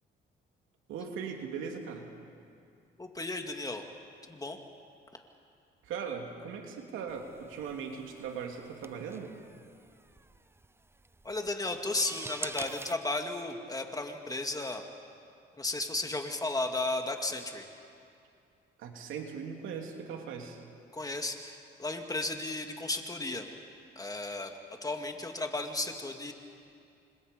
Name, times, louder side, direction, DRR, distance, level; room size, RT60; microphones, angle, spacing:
voice 1, 0.9-2.1 5.8-9.4 18.8-20.6, right 6 dB, 90° right, 2 dB, 2.9 m, -39 dB
voice 2, 3.0-3.8 4.3-4.6 11.2-14.8 15.6-17.6 20.9-23.5 24.0-24.5 24.8-26.3, left 2 dB, 20° left, 4 dB, 2.4 m, -34 dB
sound 1, 7.1-12.9, right 2 dB, 10° right, 0.6 m, -46 dB
29.5 x 25.5 x 5.4 m, 2.5 s
cardioid pair, 90°, 20 cm